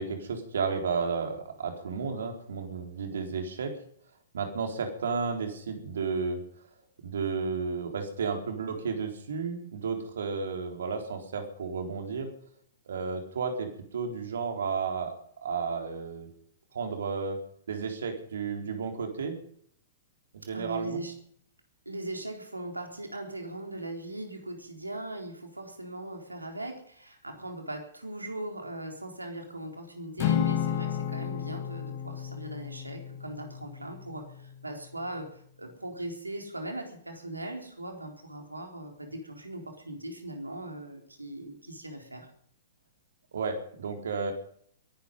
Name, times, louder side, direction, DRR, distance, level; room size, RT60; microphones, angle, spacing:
voice 1, 0.0-3.7 4.3-6.4 7.0-12.3 12.9-15.1 15.4-16.3 16.7-17.4 17.7-19.3 20.3-21.0 43.3-44.3, right 5 dB, 65° right, 4 dB, 4.0 m, -32 dB
voice 2, 20.5-21.1 21.9-42.3, right 1 dB, 85° right, 3 dB, 3.9 m, -39 dB
Acoustic guitar / Strum, 30.2-34.6, left 10 dB, 40° left, 1.5 m, -32 dB
22.0 x 11.5 x 5.4 m, 0.63 s
figure-of-eight pair, 110°, 0 cm